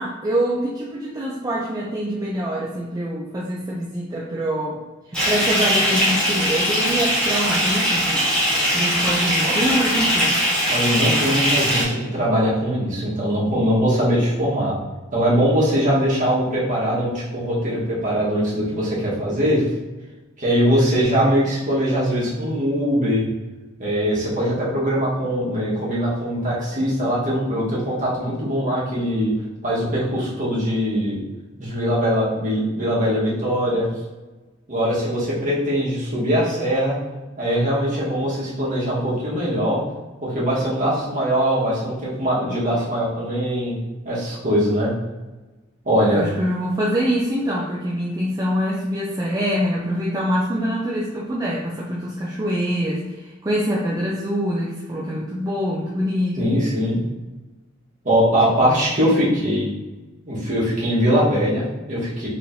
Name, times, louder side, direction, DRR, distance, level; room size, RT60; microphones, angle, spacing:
voice 1, 0.0-4.8 5.1-8.3 8.7-10.4 46.1-56.6, equal, 20° right, -5 dB, 0.4 m, -25 dB
Bathtub (filling or washing) / Fill (with liquid), 5.1-11.8, equal, 5° left, 1.2 m, -20 dB
voice 2, 10.7-14.7 15.1-19.6 20.4-23.3 23.8-29.3 29.6-31.2 31.6-33.9 34.7-37.0 37.4-39.8 40.2-43.8 44.0-44.9 45.8-46.2 56.4-57.0 58.0-59.7 60.3-62.3, equal, 40° right, -6 dB, 1.3 m, -21 dB
4.5 x 3.1 x 2.6 m, 1.2 s
head